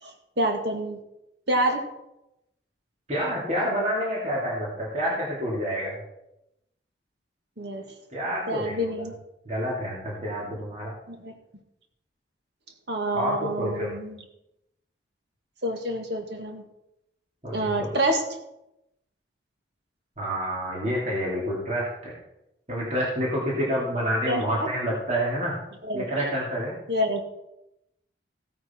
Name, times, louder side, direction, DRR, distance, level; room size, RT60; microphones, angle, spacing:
voice 1, 0.0-1.0 1.5-1.8 7.6-7.8 8.5-9.2 11.1-11.3 12.9-14.2 15.6-16.6 17.5-18.2 24.3-24.4 25.8-26.1 26.9-27.2, right 1 dB, 65° right, 4 dB, 1.9 m, -27 dB
voice 2, 3.1-6.0 8.1-9.1 9.4-10.9 13.1-13.9 17.4-17.9 20.2-22.1 22.7-25.6 25.9-26.7, equal, 35° right, -5 dB, 2.7 m, -28 dB
15.5 x 9.5 x 4.4 m, 0.87 s
head